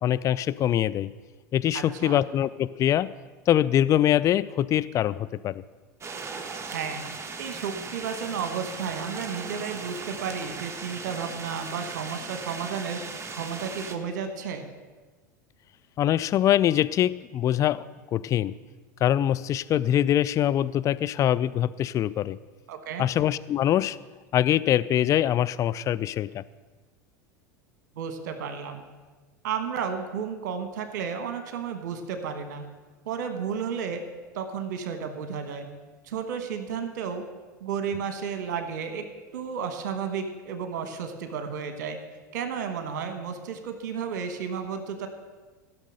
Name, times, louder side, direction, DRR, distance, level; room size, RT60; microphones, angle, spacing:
voice 1, 0.0-1.1 1.5-3.1 3.5-5.6 16.0-17.9 18.1-18.5 19.0-22.4 23.0-24.0 24.3-26.4, left 11 dB, 35° left, 15 dB, 0.4 m, -23 dB
voice 2, 1.7-2.2 6.7-7.0 7.4-14.6 22.7-23.0 28.0-28.8 29.4-32.6 33.0-34.0 34.3-35.7 36.0-37.3 37.6-39.1 39.3-42.0 42.3-45.1, right 6 dB, 70° right, 7 dB, 1.3 m, -32 dB
sound 1, 6.0-14.0, right 4 dB, 25° right, 1.2 m, -38 dB
15.0 x 6.3 x 6.4 m, 1.3 s
hypercardioid pair, 85°, 10 cm